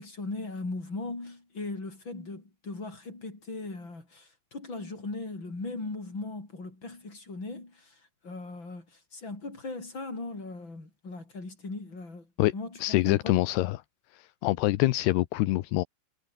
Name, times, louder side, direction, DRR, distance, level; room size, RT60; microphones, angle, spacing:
voice 1, 0.0-8.0 8.2-8.9 9.1-12.3 12.5-13.4, left 3 dB, 25° left, 7.1 m, -38 dB
voice 2, 12.8-13.8 14.1-15.8, left 17 dB, 80° left, 2.6 m, -25 dB
omnidirectional pair, 5.5 m